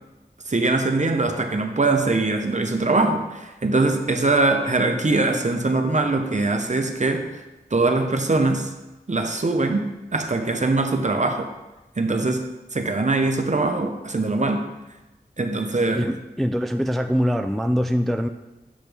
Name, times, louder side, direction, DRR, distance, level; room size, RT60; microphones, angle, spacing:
voice 1, 0.5-7.3 7.7-8.7 9.1-11.5 12.0-14.7 15.4-16.1, right 3 dB, 45° right, 5 dB, 0.8 m, -22 dB
voice 2, 15.9-18.3, equal, ahead, 5 dB, 0.3 m, -23 dB
7.2 x 6.2 x 3.5 m, 1.0 s
wide cardioid pair, 60°, 17 cm